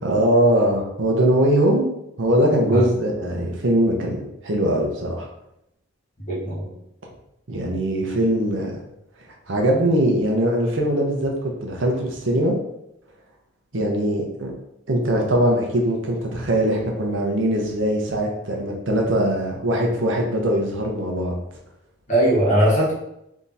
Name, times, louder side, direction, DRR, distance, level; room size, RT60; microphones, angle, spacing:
voice 1, 0.0-1.9 2.2-4.2 4.4-5.3 7.5-8.8 9.5-12.6 13.7-14.5 14.9-21.3, right 1 dB, 75° right, 0 dB, 0.9 m, -21 dB
voice 2, 6.3-6.7 22.1-22.9, right 1 dB, 40° left, -6 dB, 1.6 m, -19 dB
3.6 x 3.0 x 4.1 m, 0.81 s
head